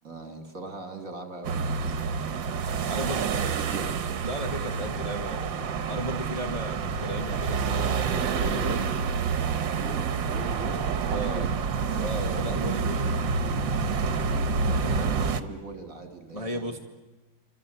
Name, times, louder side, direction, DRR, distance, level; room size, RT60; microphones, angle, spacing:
voice 1, 0.0-2.1 2.9-4.0 9.8-11.5 14.6-16.7, right 3 dB, 45° right, 5 dB, 3.1 m, -40 dB
sound 1, 1.4-15.4, right 5 dB, 75° right, 1.9 m, -28 dB
voice 2, 2.9-3.2 4.2-8.9 11.1-11.5 11.9-13.2 14.7-14.9 16.3-16.8, equal, 20° left, 2 dB, 1.7 m, -35 dB
28.0 x 25.5 x 8.0 m, 1.2 s
omnidirectional pair, 2.1 m